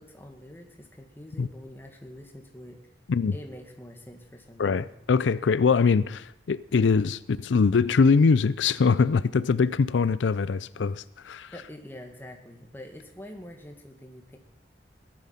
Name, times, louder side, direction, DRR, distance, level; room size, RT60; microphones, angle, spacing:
voice 1, 0.0-2.8 3.3-5.0 11.2-14.4, left 1 dB, 10° left, 1.9 m, -45 dB
voice 2, 4.6-11.5, left 5 dB, 90° left, 0.5 m, -23 dB
17.5 x 11.0 x 5.8 m
head